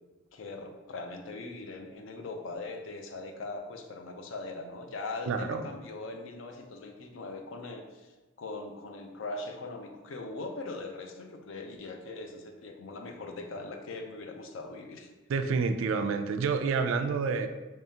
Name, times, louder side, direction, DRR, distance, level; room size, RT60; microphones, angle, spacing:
voice 1, 0.3-8.1 8.4-15.1, left 3 dB, 75° left, 4 dB, 0.5 m, -40 dB
voice 2, 5.3-5.7 15.3-17.5, right 5 dB, 80° right, 8 dB, 0.3 m, -28 dB
3.5 x 3.4 x 2.8 m, 1.2 s
head